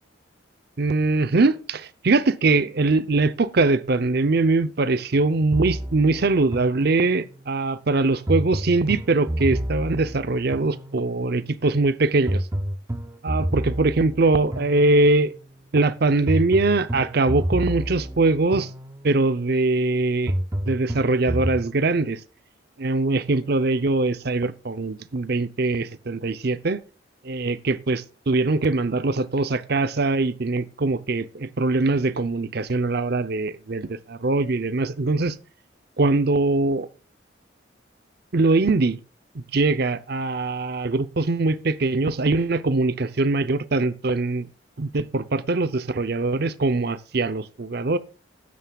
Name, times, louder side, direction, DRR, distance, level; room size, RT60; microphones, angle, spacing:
voice 1, 0.8-12.4 13.2-15.3 15.7-18.7 19.0-20.3 20.6-22.2 22.8-26.8 27.2-35.4 36.0-36.9 38.3-39.0 39.3-44.5 44.8-48.0, right 3 dB, 55° right, 0.6 m, -22 dB
sound 1, 5.5-7.4 8.3-11.3 12.3-15.4 16.3-19.3 20.3-21.6, equal, 15° right, 0.6 m, -29 dB
12.5 x 9.4 x 2.3 m
head